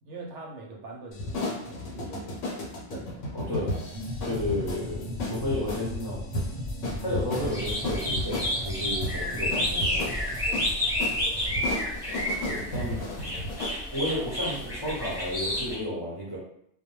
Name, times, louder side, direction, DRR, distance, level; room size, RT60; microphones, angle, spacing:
voice 1, 0.0-2.3 2.9-3.3 11.1-11.8, right 2 dB, 75° right, -1 dB, 0.9 m, -43 dB
sound 1, 1.1-13.8, left 2 dB, 85° left, 1.0 m, -35 dB
voice 2, 3.3-3.7 4.2-6.2 7.0-10.4 12.4-13.0 13.9-16.4, left 1 dB, 25° left, -8 dB, 0.6 m, -32 dB
sound 2, 3.9-12.5, left 1 dB, 50° right, 0.7 m, -37 dB
sound 3, 7.4-15.8, left 1 dB, 5° right, 0.8 m, -30 dB
2.2 x 2.2 x 3.0 m, 0.71 s
omnidirectional pair, 1.3 m